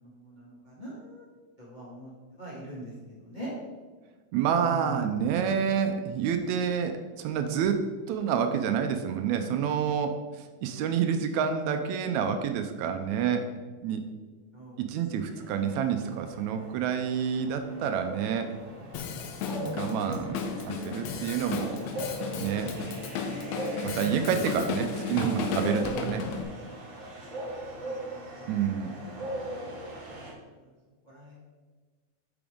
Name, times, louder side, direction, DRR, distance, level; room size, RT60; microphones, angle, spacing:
voice 1, 0.0-1.2 1.6-2.1 2.4-2.9 3.2-3.5 4.6-5.1 14.5-14.8 15.1-15.7 18.8-19.0 19.5-19.9 23.9-24.3 27.3-27.5 27.8-28.2 29.1-29.3 31.1-31.4, right 1 dB, 20° left, -7 dB, 1.6 m, -42 dB
voice 2, 4.3-13.5 13.8-14.0 14.8-18.5 19.7-21.8 22.4-22.7 23.8-26.3 28.5-28.9, right 7 dB, 80° right, 7 dB, 1.9 m, -28 dB
sound 1, 15.6-30.3, right 1 dB, 60° right, 0.8 m, -40 dB
Drum kit, 18.9-26.4, left 6 dB, 75° left, 1.8 m, -34 dB
8.7 x 6.0 x 3.6 m, 1.4 s
omnidirectional pair, 3.3 m